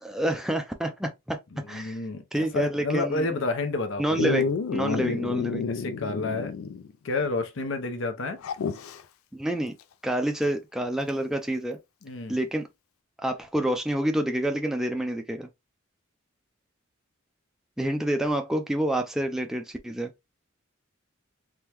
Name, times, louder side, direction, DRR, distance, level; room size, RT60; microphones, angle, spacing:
voice 1, 0.0-2.0 2.3-3.3 4.0-4.4 4.7-5.7 9.3-9.7 10.0-11.8 12.3-12.7 13.2-15.5 17.8-20.1, right 1 dB, ahead, 0.3 m, -28 dB
voice 2, 1.5-4.3 4.8-6.5 7.0-8.4 12.0-12.4, left 3 dB, 65° left, 0.7 m, -30 dB
Dog, 4.2-6.9 7.2-7.3 8.4-9.0 11.1-11.2, left 5 dB, 90° left, 0.4 m, -29 dB
3.6 x 2.1 x 3.0 m
head